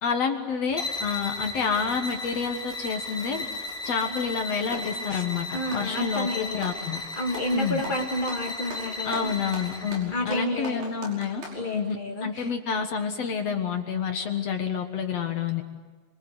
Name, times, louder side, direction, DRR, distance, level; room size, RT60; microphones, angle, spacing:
voice 1, 0.0-3.4 3.9-7.0 7.5-7.8 9.0-11.4 11.7-15.6, left 6 dB, 60° left, 5 dB, 1.9 m, -29 dB
sound 1, 0.7-10.1, left 2 dB, ahead, 2.1 m, -35 dB
Clapping, 4.2-5.0 5.6-6.8 7.3-7.6 7.8-11.6, right 2 dB, 55° right, 7.0 m, -40 dB
voice 2, 5.5-6.8 7.1-9.3 10.1-10.9 11.5-12.5, left 1 dB, 85° left, 0 dB, 0.4 m, -30 dB
26.5 x 24.5 x 8.0 m, 1.3 s
omnidirectional pair, 4.8 m